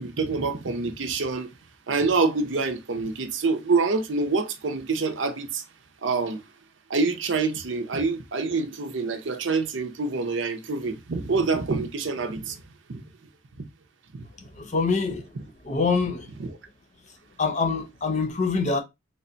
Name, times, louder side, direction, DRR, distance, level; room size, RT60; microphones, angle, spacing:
voice 1, 0.0-1.5 1.9-5.7 6.0-6.4 6.9-12.6 12.9-13.0 13.6-13.7 14.1-14.2 16.4-16.5, right 4 dB, 85° right, 0.6 m, -26 dB
voice 2, 14.5-15.3 15.6-16.3 17.4-18.8, left 4 dB, 40° left, 0.6 m, -25 dB
3.5 x 2.2 x 3.7 m
head